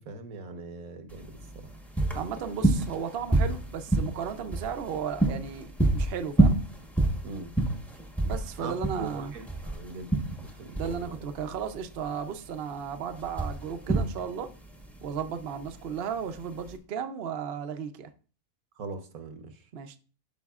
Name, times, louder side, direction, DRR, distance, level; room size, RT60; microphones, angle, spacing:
voice 1, 0.1-1.7 7.2-7.5 8.6-10.1 10.4-11.2 18.8-19.5, right 3 dB, 80° right, 1.4 m, -41 dB
sound 1, 1.1-16.8, right 2 dB, ahead, 0.9 m, -28 dB
voice 2, 2.1-6.6 8.2-9.3 10.7-14.5 15.0-18.1 19.7-20.0, right 7 dB, 55° right, 0.7 m, -35 dB
12.5 x 5.2 x 2.4 m
omnidirectional pair, 1.5 m